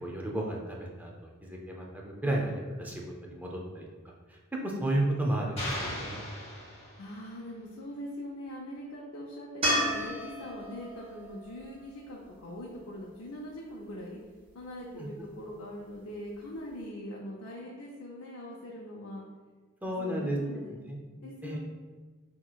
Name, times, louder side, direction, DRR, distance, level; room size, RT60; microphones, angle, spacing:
voice 1, 0.0-1.1 1.4-2.5 2.8-4.4 4.6-6.2 15.0-15.3 19.8-21.0 21.4-21.6, right 1 dB, 10° right, -2 dB, 0.5 m, -33 dB
sound 1, 5.6-7.3, left 1 dB, 30° left, 1.3 m, -38 dB
voice 2, 7.0-14.2 14.5-19.2 19.8-20.8 21.2-21.6, equal, 80° left, -4 dB, 0.6 m, -42 dB
sound 2, 9.6-12.9 16.1-16.2, equal, 30° right, 1.4 m, -33 dB
5.7 x 3.0 x 2.3 m, 1.4 s
head